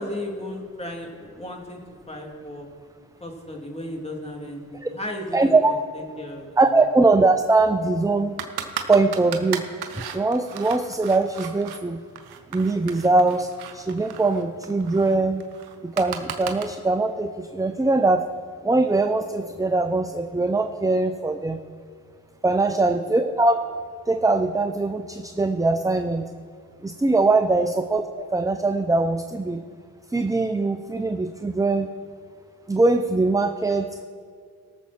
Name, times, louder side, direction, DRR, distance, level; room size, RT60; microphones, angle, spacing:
voice 1, 0.0-1.8 2.1-2.7 3.2-6.9 22.7-23.1 27.5-27.7, left 1 dB, 15° left, 0 dB, 3.2 m, -35 dB
voice 2, 5.3-5.8 6.6-8.4 8.9-9.7 9.9-12.0 12.5-15.4 15.8-18.2 18.6-21.6 22.4-23.7 24.1-26.3 26.8-29.6 30.1-31.9 32.7-34.0, right 3 dB, 10° right, 9 dB, 0.7 m, -22 dB
sound 1, 8.4-11.8 12.2-16.6, right 9 dB, 75° right, 1.2 m, -35 dB
18.5 x 7.0 x 4.5 m, 2.1 s
hypercardioid pair, 45°, 38 cm